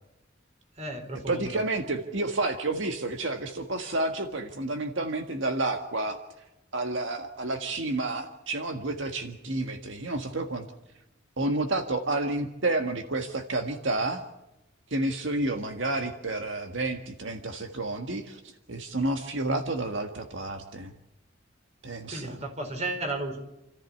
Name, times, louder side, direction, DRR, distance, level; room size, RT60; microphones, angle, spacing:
voice 1, 0.8-1.6 22.1-23.4, right 2 dB, 35° right, 5 dB, 4.5 m, -34 dB
voice 2, 1.3-6.2 6.7-10.7 11.4-14.2 14.9-20.9 21.8-22.4, right 2 dB, 75° right, 6 dB, 1.7 m, -30 dB
29.0 x 14.5 x 8.5 m, 0.95 s
head